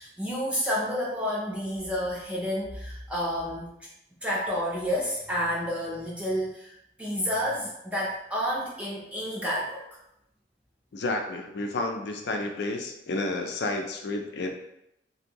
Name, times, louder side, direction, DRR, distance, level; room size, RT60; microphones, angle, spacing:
voice 1, 0.0-3.9 4.2-10.0, equal, 5° right, -6 dB, 0.4 m, -30 dB
voice 2, 10.9-14.5, left 2 dB, 70° left, 3 dB, 0.4 m, -31 dB
2.6 x 2.6 x 2.8 m, 0.82 s
head